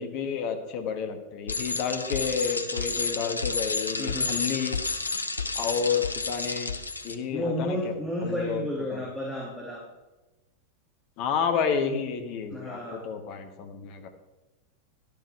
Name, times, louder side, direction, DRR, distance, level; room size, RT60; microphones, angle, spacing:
voice 1, 0.0-4.8 5.5-6.7 7.0-7.9 8.2-9.0 11.2-14.1, left 6 dB, 40° left, 6 dB, 1.5 m, -30 dB
Bicycle, 1.5-7.1, left 4 dB, 80° left, 0.7 m, -30 dB
voice 2, 4.0-4.4 7.3-9.8 12.5-13.1, left 1 dB, ahead, -4 dB, 2.3 m, -32 dB
12.0 x 12.0 x 3.4 m, 1.1 s
figure-of-eight pair, 90°, 0 cm